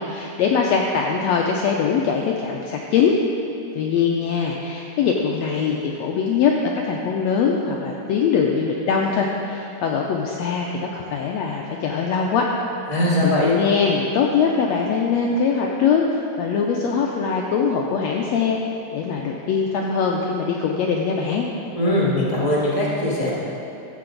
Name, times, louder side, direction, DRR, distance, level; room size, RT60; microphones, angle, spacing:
voice 1, 0.0-3.2 3.7-12.5 13.2-18.6 18.9-21.5, left 6 dB, 85° left, 0 dB, 1.5 m, -22 dB
voice 2, 12.9-13.5 21.8-23.4, left 1 dB, 25° right, -6 dB, 0.7 m, -20 dB
14.0 x 7.6 x 3.9 m, 2.8 s
omnidirectional pair, 3.7 m